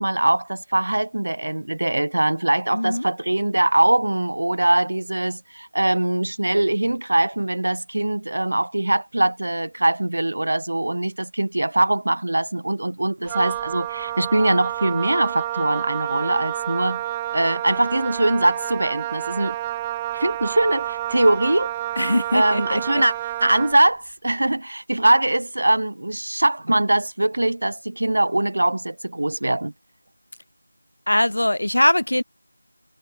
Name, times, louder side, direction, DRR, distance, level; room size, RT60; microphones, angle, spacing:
voice 1, 0.0-17.0 17.3-19.6 20.1-21.7 22.3-23.1 23.4-29.7, right 1 dB, 60° right, 3.7 m, -22 dB
voice 2, 2.7-3.1 22.0-23.0 31.1-32.2, left 1 dB, 80° left, 1.1 m, -21 dB
Wind instrument woodwind instrument, 13.2-23.8, right 14 dB, 10° right, 0.4 m, -29 dB
figure-of-eight pair, 175°, 0 cm